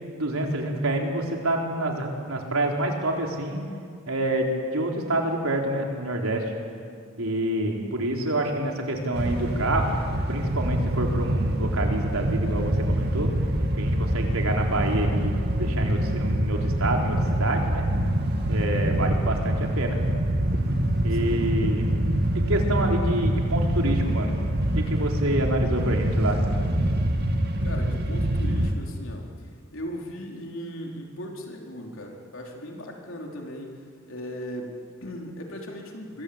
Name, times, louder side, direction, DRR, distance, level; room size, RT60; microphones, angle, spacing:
voice 1, 0.2-3.6 4.1-6.5 7.2-10.0 10.3-13.3 13.8-17.8 18.5-20.0 21.0-21.9 22.3-24.4 24.8-26.4, right 1 dB, 75° right, 1 dB, 4.2 m, -27 dB
sound 1, 9.1-28.7, right 1 dB, 45° right, 2.4 m, -25 dB
voice 2, 21.1-21.4 27.6-36.2, equal, 65° left, 0 dB, 4.2 m, -38 dB
25.0 x 23.5 x 8.8 m, 2.2 s
head